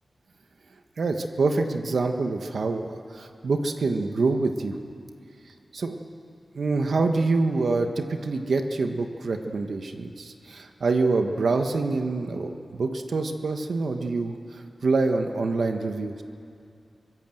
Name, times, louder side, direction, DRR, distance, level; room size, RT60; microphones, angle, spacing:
voice 1, 1.0-4.8 5.7-6.0 6.5-16.2, right 3 dB, 70° right, 5 dB, 1.4 m, -26 dB
23.5 x 19.5 x 7.9 m, 2.4 s
wide cardioid pair, 125°, 0 cm